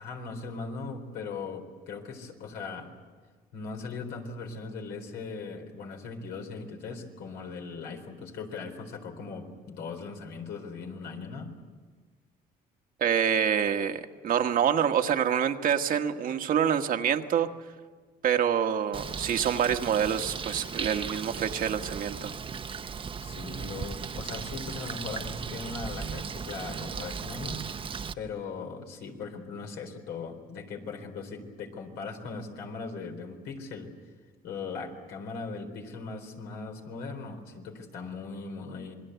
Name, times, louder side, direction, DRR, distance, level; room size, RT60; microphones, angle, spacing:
voice 1, 0.0-2.9 3.5-11.5 23.2-27.6 28.2-33.9 34.4-39.0, left 4 dB, 80° left, 3 dB, 4.2 m, -39 dB
voice 2, 13.0-17.5 18.2-22.3, right 8 dB, 55° right, 6 dB, 1.4 m, -26 dB
Bird, 18.9-28.1, right 6 dB, 30° right, 0.8 m, -37 dB
27.0 x 21.0 x 8.1 m, 1.5 s
cardioid pair, 110°, 17 cm